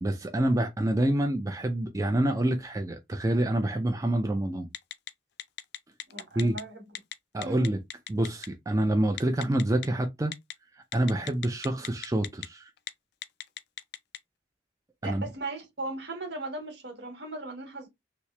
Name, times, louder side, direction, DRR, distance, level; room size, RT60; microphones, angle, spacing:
voice 1, 0.0-4.7 6.4-6.6 7.3-7.8 8.1-10.3 10.9-12.7 15.0-15.2, right 1 dB, 20° right, 0.4 m, -27 dB
Telephone, 4.7-5.1 5.4-6.6 6.9-7.1 7.4-8.5 9.2-9.9 10.3-10.5 10.9-12.5 12.8-12.9 13.2-14.2, left 11 dB, 60° left, 0.4 m, -36 dB
voice 2, 6.1-6.8 7.4-7.6 15.0-17.9, right 2 dB, 70° right, 1.3 m, -37 dB
3.0 x 2.8 x 3.2 m
head